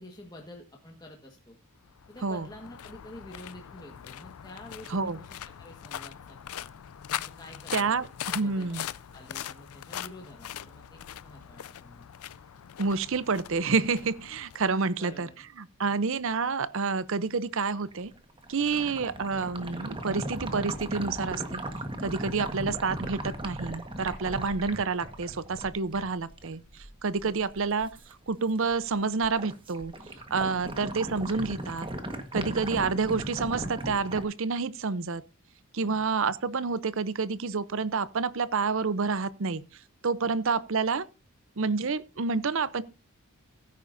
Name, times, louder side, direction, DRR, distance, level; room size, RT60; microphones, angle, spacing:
voice 1, 0.0-1.6 2.1-6.7 7.2-8.8 9.1-12.1 15.0-15.4 15.8-16.0 18.7-18.9 22.2-22.5 27.2-27.4 30.5-30.8 35.8-36.1 40.2-40.4, left 1 dB, 20° left, 1.5 m, -49 dB
sound 1, 1.8-15.2, left 11 dB, 80° left, 0.4 m, -41 dB
voice 2, 7.7-8.1 8.3-8.9 12.8-15.3 15.8-18.1 18.5-21.6 22.0-26.6 27.0-27.9 28.3-29.9 30.3-31.9 32.3-35.2 35.7-39.6 40.0-41.1 41.6-42.8, right 4 dB, 60° right, 0.6 m, -28 dB
sound 2, 17.8-28.1 28.5-28.9 29.2-34.2, right 1 dB, 25° right, 1.4 m, -37 dB
15.5 x 9.4 x 2.6 m
head